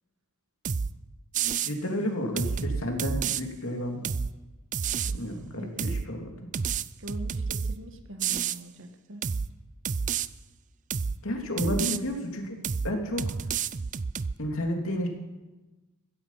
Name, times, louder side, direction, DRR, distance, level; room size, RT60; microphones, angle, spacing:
sound 1, 0.6-0.9 1.3-1.7 2.4-3.4 4.0-4.3 4.7-5.2 5.8-6.1 6.5-7.8 8.2-8.6 9.2-9.5 9.8-10.3 10.9-11.2 11.6-12.0 12.6-12.9 13.2-14.3, right 6 dB, 35° right, 0.4 m, -29 dB
voice 1, 1.6-4.0 5.1-6.3 11.2-12.6 12.8-13.3 14.4-15.1, left 1 dB, 65° left, 2 dB, 2.9 m, -31 dB
voice 2, 5.6-5.9 7.0-9.2 11.6-11.9, right 1 dB, 60° right, 6 dB, 1.6 m, -42 dB
15.5 x 15.0 x 5.8 m, 1.1 s
head